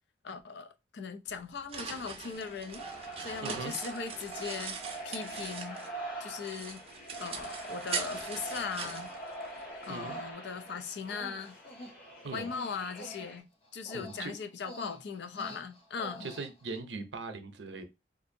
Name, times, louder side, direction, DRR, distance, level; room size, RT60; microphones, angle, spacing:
voice 1, 0.2-4.8 5.0-5.8 6.2-6.8 7.2-9.1 9.8-11.6 12.3-13.5 13.7-16.3, left 5 dB, 70° left, 0.5 m, -39 dB
sound 1, 1.3-6.0 6.4-9.9, right 5 dB, 30° right, 0.5 m, -41 dB
sound 2, 2.3-13.4, right 2 dB, 55° left, 1.8 m, -43 dB
voice 2, 3.4-3.7 9.9-10.2 12.2-12.5 13.9-14.3 16.2-17.8, right 3 dB, 80° right, 0.6 m, -40 dB
Human voice, 4.8-4.9 5.6-6.0 6.6-6.7 7.0-7.3 7.6-7.7 8.1-8.3 8.7-9.7 9.9-10.3 10.5-16.8, equal, 30° left, 0.6 m, -49 dB
3.9 x 2.6 x 2.6 m
head